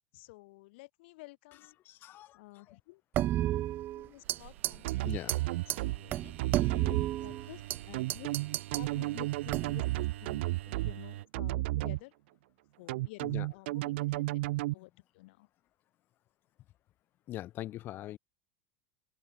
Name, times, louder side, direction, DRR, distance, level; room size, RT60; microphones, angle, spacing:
voice 1, 0.1-1.8 2.3-3.0 3.9-5.1 5.8-6.3 6.6-8.3 8.7-12.1 12.8-13.2 13.5-14.4 14.7-15.5, left 22 dB, 60° left, 6.2 m, -52 dB
voice 2, 1.8-2.8 5.0-5.4 13.2-13.5 17.3-18.2, left 14 dB, 30° left, 1.7 m, -42 dB
sound 1, 3.1-4.4 4.6-4.9 5.3-5.4 5.7-5.8 6.1-7.8 8.1-8.9 9.5-9.9, right 13 dB, 30° right, 1.3 m, -32 dB
sound 2, 4.2-11.3, right 14 dB, 90° right, 6.3 m, -47 dB
sound 3, 4.8-6.0 6.4-7.0 7.9-10.9 11.3-12.0 12.9-14.7, right 19 dB, 70° right, 0.6 m, -32 dB
open air
supercardioid pair, 160°, 6 cm